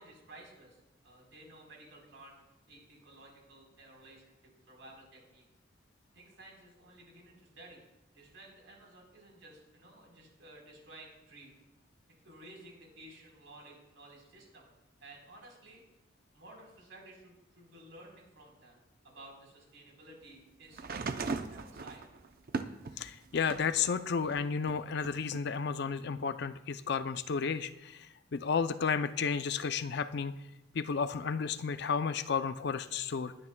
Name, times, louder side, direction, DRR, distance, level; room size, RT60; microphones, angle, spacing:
voice 1, 0.0-2.4 2.7-4.3 4.7-5.4 6.1-11.6 12.2-14.7 15.0-15.8 16.3-18.8 19.0-22.0, right 1 dB, 80° right, -1 dB, 3.9 m, -54 dB
sound 1, 20.7-23.8 24.3-25.4 26.4-26.5, right 4 dB, 50° right, 0.6 m, -39 dB
voice 2, 23.0-28.1 28.3-30.3 30.7-33.3, left 6 dB, 60° left, 11 dB, 0.5 m, -32 dB
20.0 x 9.8 x 2.2 m, 0.95 s
head